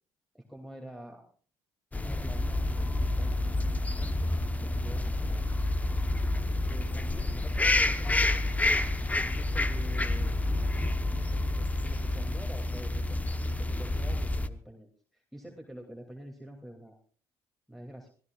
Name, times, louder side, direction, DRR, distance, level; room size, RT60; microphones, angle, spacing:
voice 1, 0.3-1.3 2.0-3.3 4.0-5.4 6.5-8.4 9.2-10.5 11.5-13.2 13.4-17.0 17.7-18.1, right 1 dB, ahead, 1 dB, 2.7 m, -46 dB
sound 1, 1.9-14.5, left 2 dB, 15° left, 1.0 m, -29 dB
25.0 x 16.0 x 2.4 m, 0.44 s
hypercardioid pair, 60°, 9 cm